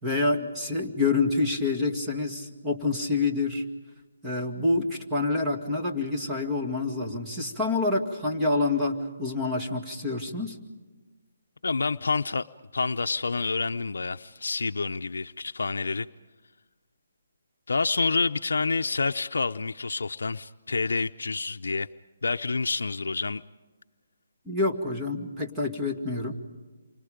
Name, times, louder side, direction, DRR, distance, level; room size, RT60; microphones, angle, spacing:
voice 1, 0.0-3.6 4.2-10.6 24.5-26.4, left 3 dB, 10° right, 2.1 m, -27 dB
voice 2, 11.6-12.5 12.7-16.1 17.7-21.9 22.2-23.4, left 4 dB, 85° left, 0.6 m, -28 dB
28.5 x 25.5 x 5.1 m
hypercardioid pair, 165°, 0 cm